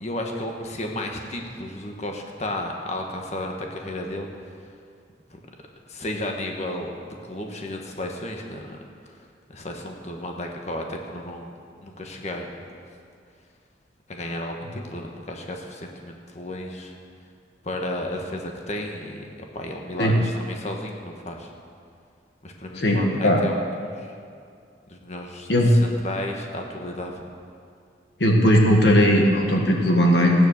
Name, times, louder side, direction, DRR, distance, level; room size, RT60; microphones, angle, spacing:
voice 1, 0.0-4.3 5.3-5.4 5.9-7.0 7.2-8.8 9.5-11.5 11.8-12.5 14.1-16.9 17.6-19.3 19.5-21.5 22.4-23.6 24.0-24.1 24.9-27.2, left 1 dB, 35° left, 2 dB, 1.3 m, -33 dB
voice 2, 22.7-23.4 25.5-25.8 28.2-30.3, equal, 65° left, 1 dB, 1.6 m, -18 dB
16.0 x 9.5 x 6.5 m, 2.3 s
head